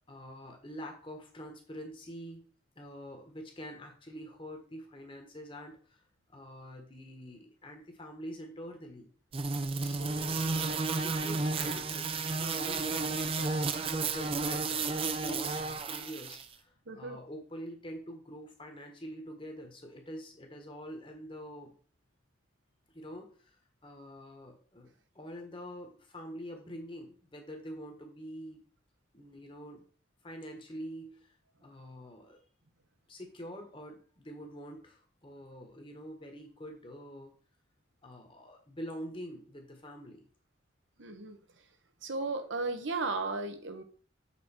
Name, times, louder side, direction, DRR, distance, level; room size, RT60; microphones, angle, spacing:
voice 1, 0.1-2.5 2.8-6.0 6.3-9.1 9.8-12.1 12.4-21.7 22.9-23.6 23.8-28.6 29.1-29.8 30.2-31.3 31.6-32.4 33.1-37.3 38.0-40.3, equal, 25° left, 3 dB, 1.3 m, -45 dB
sound 1, 9.3-16.5, right 4 dB, 30° right, 0.5 m, -32 dB
voice 2, 16.9-17.2 41.0-41.4 42.0-43.8, right 3 dB, 80° right, 7 dB, 1.1 m, -35 dB
7.3 x 3.8 x 4.3 m, 0.42 s
head